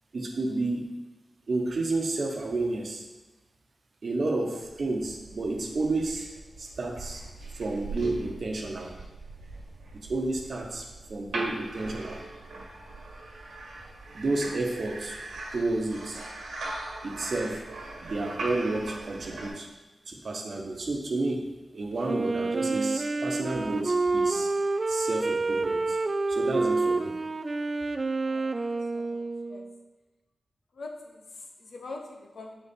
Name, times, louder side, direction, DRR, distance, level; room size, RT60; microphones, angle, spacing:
voice 1, 0.1-0.9 1.5-3.0 4.0-6.3 6.6-7.2 7.5-8.9 9.9-12.2 14.1-15.2 15.5-16.2 17.0-17.6 18.0-19.7 20.1-21.5 21.7-24.5 24.9-26.0 26.3-27.1, right 2 dB, 65° right, 2 dB, 1.0 m, -31 dB
sound 1, 4.6-19.5, right 2 dB, 90° right, 1.5 m, -40 dB
Wind instrument woodwind instrument, 22.0-29.8, right 3 dB, 45° right, 0.4 m, -28 dB
voice 2, 28.2-29.7 30.7-32.5, left 3 dB, 75° left, 3 dB, 0.9 m, -44 dB
6.2 x 4.2 x 5.3 m, 1.1 s
cardioid pair, 55°, 0 cm